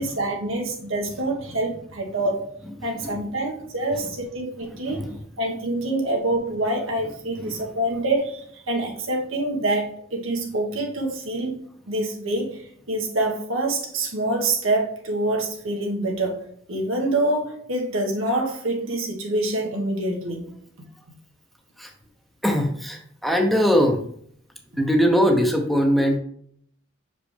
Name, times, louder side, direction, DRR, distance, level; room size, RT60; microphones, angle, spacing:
voice 1, 0.0-2.5 2.8-5.1 5.4-11.5 11.9-12.6 12.9-20.5, right 2 dB, 85° right, 0 dB, 1.5 m, -26 dB
voice 2, 2.8-3.2 3.9-4.1 4.7-5.2 7.4-7.7 21.8-21.9 22.4-24.0 24.7-26.2, equal, ahead, 2 dB, 0.8 m, -22 dB
6.2 x 5.1 x 3.3 m, 0.64 s
head